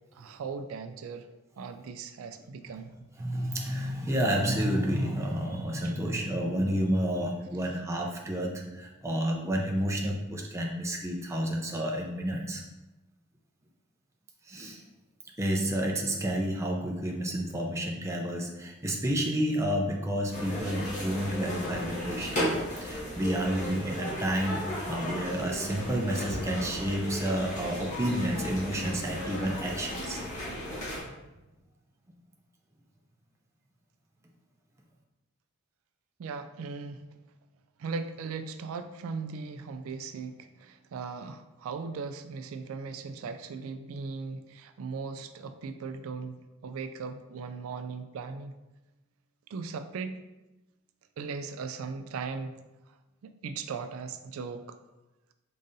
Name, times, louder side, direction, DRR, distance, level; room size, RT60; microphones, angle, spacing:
voice 1, 0.1-1.3 1.6-2.9 5.8-5.9 36.2-37.0 37.8-48.5 49.5-50.1 51.2-52.5 53.2-54.8, right 4 dB, 85° right, 9 dB, 0.3 m, -38 dB
voice 2, 3.2-12.6 14.5-14.8 15.4-30.2, equal, 15° right, 0 dB, 0.5 m, -30 dB
sound 1, 20.3-31.0, equal, 35° left, 1.5 m, -35 dB
5.3 x 3.8 x 2.7 m, 1.0 s
head